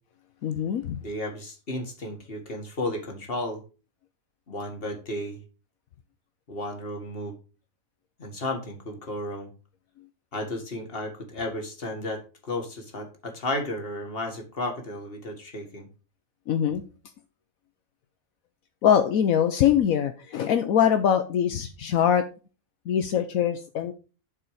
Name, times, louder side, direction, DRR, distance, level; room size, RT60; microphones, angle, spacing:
voice 1, 0.4-1.0 16.5-16.8 18.8-22.2 22.9-23.9, left 9 dB, 75° left, 8 dB, 1.2 m, -23 dB
voice 2, 1.0-3.6 4.5-5.4 6.5-7.4 8.2-9.5 10.3-15.9, left 1 dB, 40° left, 3 dB, 2.1 m, -33 dB
11.5 x 4.8 x 5.0 m, 0.34 s
omnidirectional pair, 1.5 m